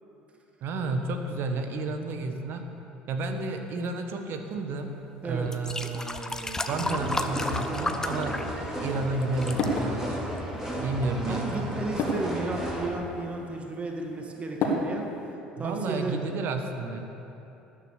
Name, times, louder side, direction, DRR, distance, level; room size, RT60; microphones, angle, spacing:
voice 1, 0.6-2.7 3.1-4.9 5.2-10.2 10.7-11.7 15.6-17.0, right 3 dB, 55° right, 6 dB, 1.4 m, -31 dB
sound 1, 4.8-4.9 5.4-8.9 9.2-9.7 10.4-10.5, left 2 dB, 10° left, 0.8 m, -33 dB
sound 2, 6.7-12.9, right 1 dB, 10° right, 3.8 m, -34 dB
sound 3, 8.0-15.4, left 2 dB, 55° left, 2.0 m, -35 dB
voice 2, 11.3-15.1 15.6-16.2, right 3 dB, 25° right, 2 dB, 2.0 m, -33 dB
13.0 x 9.6 x 6.6 m, 2.9 s
hypercardioid pair, 65°, 5 cm